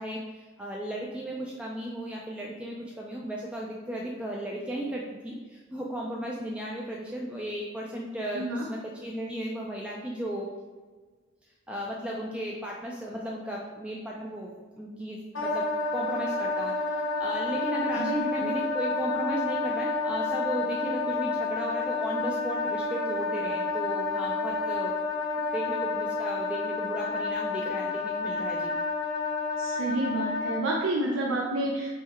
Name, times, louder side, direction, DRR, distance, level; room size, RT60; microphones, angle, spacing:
voice 1, 0.0-10.5 11.7-14.5 14.8-25.0 25.5-28.7, right 1 dB, 5° right, -3 dB, 0.3 m, -35 dB
voice 2, 8.3-8.7 18.0-18.5 29.6-31.9, right 1 dB, 85° right, -2 dB, 0.5 m, -29 dB
Wind instrument woodwind instrument, 15.3-30.6, left 3 dB, 80° left, 1.0 m, -30 dB
3.7 x 3.1 x 4.3 m, 1.4 s
head